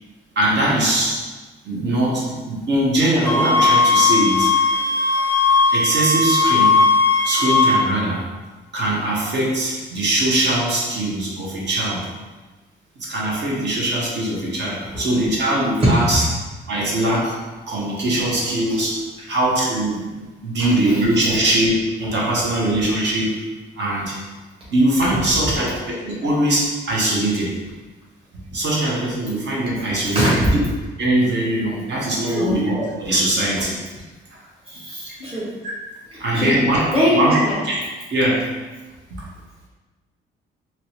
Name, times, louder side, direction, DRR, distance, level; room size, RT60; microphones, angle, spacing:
voice 1, 0.4-1.2 1.6-4.7 5.7-6.8 7.2-8.2 8.7-12.0 13.0-16.2 16.7-17.4 17.7-19.0 19.3-20.0 20.4-23.3 23.8-24.1 24.7-27.5 28.5-30.4 31.0-33.7 35.0-35.1 35.6-35.7 36.2-37.4 37.6-37.8 38.1-38.4, right 1 dB, 60° right, -4 dB, 1.1 m, -21 dB
sound 1, 3.3-7.8, left 3 dB, 10° left, 0.4 m, -17 dB
voice 2, 20.6-21.0 30.1-30.5 32.2-32.6 34.7-35.5 36.1-36.5 36.9-37.5, equal, 30° right, -9 dB, 1.2 m, -21 dB
2.9 x 2.9 x 3.0 m, 1.2 s
cardioid pair, 90°, 20 cm